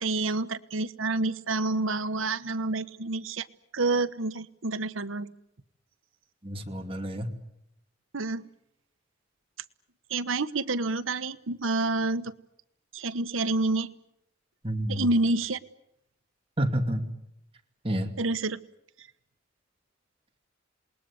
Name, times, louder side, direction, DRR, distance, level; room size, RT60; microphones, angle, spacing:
voice 1, 0.0-3.5 3.7-5.3 8.1-8.4 10.1-12.3 12.9-13.9 14.9-15.6 18.2-18.6 19.0-19.1, right 2 dB, 90° right, 11 dB, 1.2 m, -28 dB
voice 2, 6.4-7.3 14.6-15.1 16.6-17.1 17.8-18.1, right 1 dB, 30° right, 3 dB, 2.6 m, -29 dB
28.0 x 20.5 x 9.7 m, 0.80 s
head